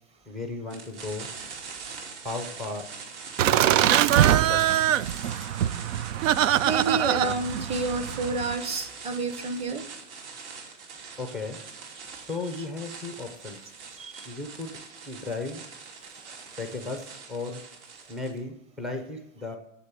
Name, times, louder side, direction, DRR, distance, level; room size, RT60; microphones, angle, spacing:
voice 1, 0.3-1.3 2.1-2.9 3.5-4.0 4.5-4.6 11.2-11.6 12.3-13.6 14.3-14.8 15.1-15.6 16.6-17.6 18.1-19.6, left 3 dB, ahead, 4 dB, 0.4 m, -35 dB
sound 1, 0.7-18.4, right 5 dB, 60° right, 2.9 m, -43 dB
Laughter, 3.4-8.6, right 11 dB, 80° right, 0.6 m, -23 dB
voice 2, 6.6-9.8 13.9-14.3, right 3 dB, 15° right, 11 dB, 0.8 m, -29 dB
10.0 x 7.3 x 8.2 m, 0.87 s
supercardioid pair, 160°, 38 cm